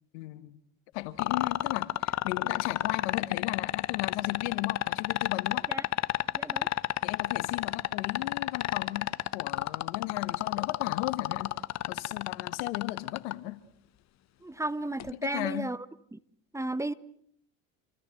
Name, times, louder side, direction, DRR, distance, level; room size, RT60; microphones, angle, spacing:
voice 1, 0.1-0.6 0.9-5.7 7.0-11.6 11.9-13.6 15.1-15.7, left 18 dB, 80° left, 1.8 m, -36 dB
sound 1, 1.2-13.3 15.0-15.1, left 14 dB, 50° left, 1.2 m, -29 dB
voice 2, 6.4-6.7 14.4-15.8 16.1-16.2 16.5-16.9, right 2 dB, 10° right, 1.1 m, -33 dB
28.0 x 24.5 x 7.9 m
supercardioid pair, 90°, 34 cm